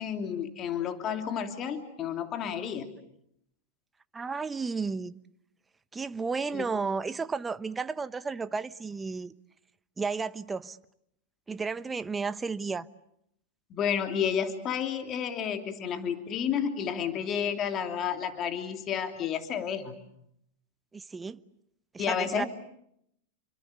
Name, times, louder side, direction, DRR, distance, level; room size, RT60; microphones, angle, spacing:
voice 1, 0.0-2.9 6.5-6.6 13.7-20.0 22.0-22.5, left 8 dB, 35° left, 3.0 m, -31 dB
voice 2, 4.1-5.1 5.9-9.3 10.0-10.8 11.5-12.9 20.9-21.4 21.9-22.5, right 4 dB, 15° right, 1.0 m, -33 dB
29.0 x 24.5 x 8.2 m
hypercardioid pair, 105°, 0 cm